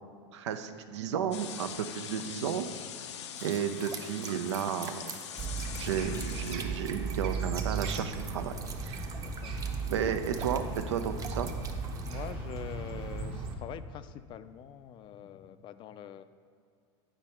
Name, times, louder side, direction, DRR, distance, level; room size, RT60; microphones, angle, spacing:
voice 1, 0.3-2.7 3.4-5.1 5.8-8.5 8.8-9.2 9.9-11.5, right 8 dB, 85° right, 9 dB, 0.5 m, -33 dB
sound 1, 1.3-6.5, left 9 dB, 85° left, 0.5 m, -43 dB
sound 2, 3.4-12.3, right 5 dB, 25° right, 0.6 m, -47 dB
sound 3, 5.4-13.6, right 4 dB, 40° right, 1.1 m, -36 dB
voice 2, 9.2-9.6 12.0-16.2, left 10 dB, 35° left, 12 dB, 0.3 m, -44 dB
9.0 x 5.3 x 4.2 m, 2.2 s
supercardioid pair, 115°, 14 cm